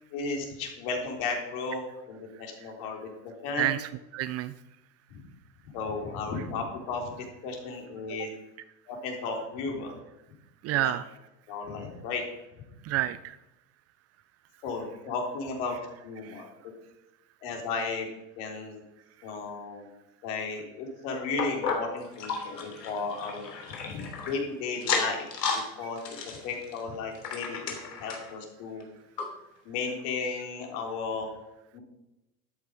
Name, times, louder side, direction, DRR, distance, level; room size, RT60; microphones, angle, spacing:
voice 1, 0.1-3.7 5.1-5.3 5.7-8.3 8.9-10.0 10.7-10.9 11.5-12.2 14.6-15.8 16.0-16.7 17.4-18.1 18.4-18.8 19.2-19.9 20.2-25.3 25.7-28.8 29.6-31.3 31.7-31.8, left 4 dB, 60° left, 2 dB, 3.9 m, -34 dB
voice 2, 3.6-4.5 10.6-11.0 12.8-13.4 16.2-16.4, right 14 dB, 30° right, 14 dB, 0.5 m, -29 dB
sound 1, 21.4-24.4 24.8-25.7 26.0-28.3 28.8-28.9 29.2-29.3 29.9-30.0, left 5 dB, 85° left, 3.1 m, -33 dB
12.5 x 9.3 x 5.2 m, 0.95 s
hypercardioid pair, 100°, 49 cm